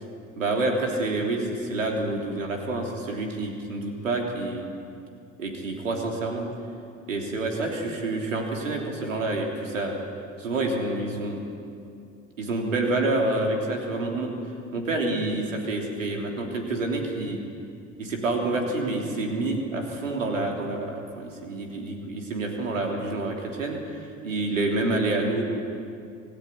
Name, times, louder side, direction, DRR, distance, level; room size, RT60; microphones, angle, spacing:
voice 1, 0.4-4.7 5.4-6.5 7.1-9.9 10.4-11.5 12.4-14.3 14.7-17.4 18.0-25.4, right 2 dB, 85° right, 1 dB, 3.4 m, -28 dB
26.5 x 15.0 x 9.9 m, 2.5 s
figure-of-eight pair, 60°, 38 cm